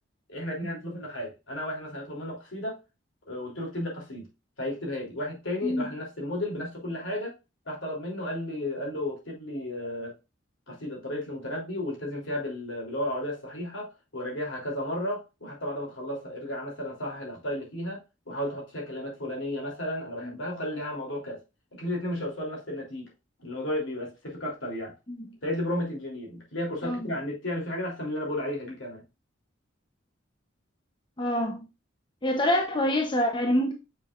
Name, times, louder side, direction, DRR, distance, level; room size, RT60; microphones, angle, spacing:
voice 1, 0.3-2.8 3.3-4.3 4.6-7.3 7.6-10.1 10.7-18.0 18.3-21.4 21.7-23.1 23.4-24.9 25.4-29.0, left 1 dB, 75° left, 3.3 m, -33 dB
voice 2, 5.6-5.9 20.2-20.3 25.1-25.3 26.8-27.1 31.2-31.7 32.2-33.7, left 1 dB, 25° left, 0.8 m, -26 dB
6.7 x 5.8 x 2.5 m
head